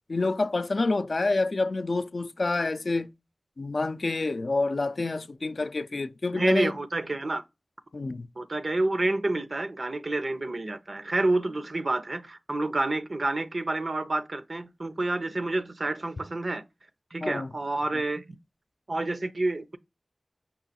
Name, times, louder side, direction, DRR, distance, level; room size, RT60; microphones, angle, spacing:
voice 1, 0.1-3.1 3.6-6.7 7.9-8.3 17.2-17.5, left 3 dB, 75° left, 0.3 m, -28 dB
voice 2, 6.3-7.4 8.4-16.6 17.1-18.4 18.9-19.8, right 2 dB, 65° right, 0.6 m, -29 dB
5.4 x 2.3 x 4.0 m
wide cardioid pair, 50°, 0 cm